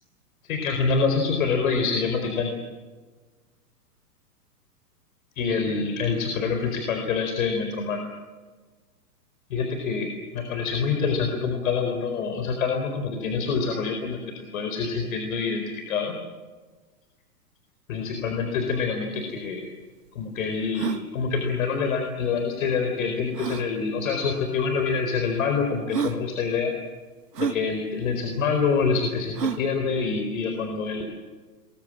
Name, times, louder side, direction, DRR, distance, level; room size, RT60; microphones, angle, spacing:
voice 1, 0.4-2.5 5.4-8.1 9.5-14.2 14.5-16.1 17.9-19.7 20.1-26.7 27.4-31.0, left 5 dB, 60° left, 4 dB, 4.5 m, -26 dB
sound 1, 19.2-19.3 19.4-19.5 20.1-20.2 20.7-21.0 22.4-22.5 23.3-23.7 24.7-24.8 25.5-25.6 25.9-26.2 27.3-27.6 29.3-29.7, right 6 dB, 85° right, 1.9 m, -29 dB
29.0 x 22.5 x 7.6 m, 1.4 s
hypercardioid pair, 130°, 46 cm